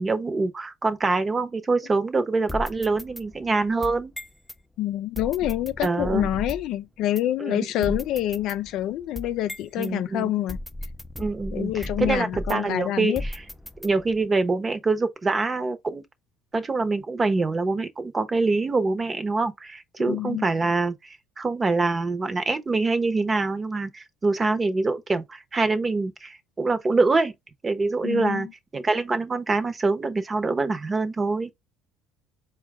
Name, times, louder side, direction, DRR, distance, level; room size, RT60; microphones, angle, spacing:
voice 1, 0.0-4.1 5.8-6.3 7.4-8.0 9.8-10.3 11.2-13.3 13.8-16.0 16.5-27.3 27.6-28.5 28.7-31.5, right 3 dB, 30° right, 0.8 m, -25 dB
sound 1, 2.5-4.6 5.2-6.8 7.2-7.3 7.8-9.9 10.5-12.8 13.2-14.2, left 1 dB, 5° left, 0.5 m, -36 dB
voice 2, 4.8-10.6 11.5-13.2 20.1-20.5 28.0-28.5, left 13 dB, 65° left, 0.4 m, -27 dB
4.4 x 2.3 x 3.5 m
supercardioid pair, 80°, 0 cm